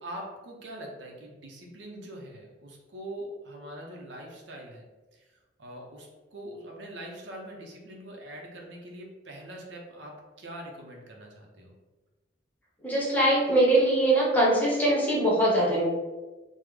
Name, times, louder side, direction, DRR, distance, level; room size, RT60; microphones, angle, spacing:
voice 1, 0.0-4.8 5.1-5.2 5.6-11.7, right 1 dB, 85° right, 0 dB, 0.6 m, -43 dB
voice 2, 12.8-15.9, right 1 dB, 10° left, -5 dB, 0.8 m, -22 dB
3.5 x 2.1 x 3.2 m, 1.2 s
head